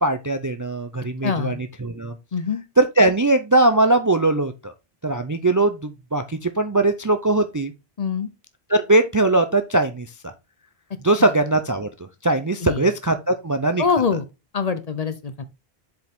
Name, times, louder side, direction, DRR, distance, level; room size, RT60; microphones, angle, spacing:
voice 1, 0.0-2.1 2.8-4.7 5.0-7.7 8.7-10.1 11.0-11.9 12.2-13.8, right 2 dB, 30° right, 0.4 m, -20 dB
voice 2, 1.2-1.6 2.3-2.6 8.0-8.3 11.2-11.3 12.6-12.9 13.8-14.2 14.5-15.4, left 5 dB, 45° left, 0.7 m, -24 dB
7.5 x 4.9 x 3.5 m
omnidirectional pair, 1.0 m